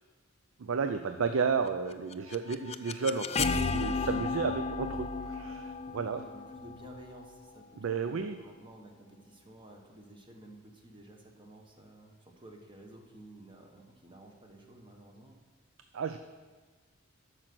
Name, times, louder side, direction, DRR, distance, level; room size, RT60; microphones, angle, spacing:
voice 1, 0.6-6.2 7.8-8.4 15.9-16.2, right 5 dB, 70° right, 8 dB, 0.4 m, -32 dB
sound 1, 1.9-7.8, left 4 dB, 30° left, 0.4 m, -34 dB
voice 2, 6.0-15.3, right 1 dB, 25° right, 1 dB, 1.3 m, -53 dB
8.9 x 6.3 x 6.0 m, 1.4 s
head